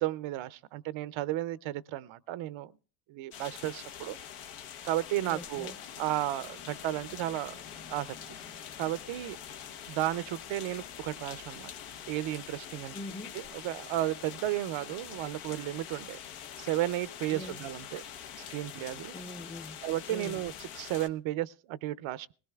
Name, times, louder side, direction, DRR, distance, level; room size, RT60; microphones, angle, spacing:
voice 1, 0.0-2.7 3.1-4.2 4.8-5.7 6.0-7.5 7.9-8.2 8.8-9.4 9.9-11.7 12.1-13.0 13.3-16.2 16.6-18.0 18.4-19.1 19.8-22.3, right 14 dB, 75° right, 0.5 m, -33 dB
sound 1, 3.3-21.1, left 9 dB, 90° left, 1.1 m, -45 dB
sound 2, 5.1-20.7, left 5 dB, 70° left, 2.3 m, -59 dB
voice 2, 5.2-5.7 12.9-13.4 17.3-17.6 19.1-19.8 20.1-20.4, left 1 dB, 15° left, 0.7 m, -42 dB
22.0 x 17.0 x 2.3 m
cardioid pair, 110°, 48 cm